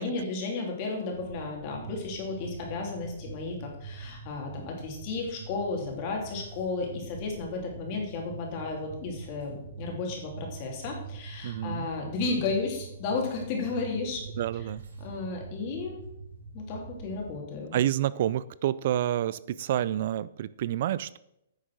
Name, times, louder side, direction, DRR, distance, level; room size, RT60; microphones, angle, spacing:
voice 1, 0.0-14.2 15.0-16.0 16.5-17.8, left 3 dB, 35° left, 1 dB, 3.1 m, -33 dB
sound 1, 1.1-17.4, right 4 dB, 85° right, 2.0 m, -44 dB
voice 2, 11.4-11.9 14.4-14.8 17.7-21.2, right 12 dB, 55° right, 19 dB, 0.3 m, -29 dB
9.6 x 6.4 x 6.2 m, 0.81 s
hypercardioid pair, 150°, 0 cm